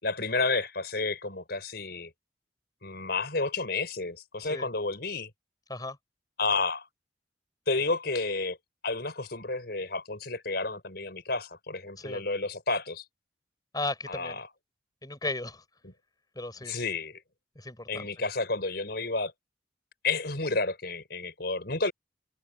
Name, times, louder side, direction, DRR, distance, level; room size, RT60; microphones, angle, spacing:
voice 1, 0.0-2.1 2.8-5.3 6.4-6.9 7.7-8.6 8.8-13.0 14.1-14.5 15.8-15.9 16.6-17.2 17.9-19.3 20.0-21.9, left 3 dB, 60° left, 5.5 m, -31 dB
voice 2, 13.7-14.4 15.0-15.6 16.4-16.7 17.6-18.1, left 2 dB, 20° left, 5.7 m, -35 dB
head